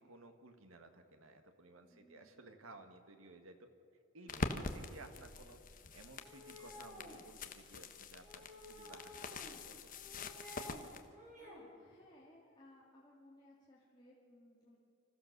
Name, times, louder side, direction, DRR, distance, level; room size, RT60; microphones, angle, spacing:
voice 1, 0.0-3.7 4.1-9.9, right 2 dB, 80° right, 7 dB, 1.9 m, -57 dB
voice 2, 1.8-2.3 11.4-14.8, left 1 dB, 20° left, -6 dB, 2.6 m, -63 dB
sound 1, 4.3-11.0, left 3 dB, 40° left, 1.2 m, -45 dB
sound 2, 6.2-7.2 8.2-9.6 9.9-10.8 11.1-11.7, equal, 35° right, 4.8 m, -53 dB
26.0 x 15.0 x 6.8 m, 2.4 s
head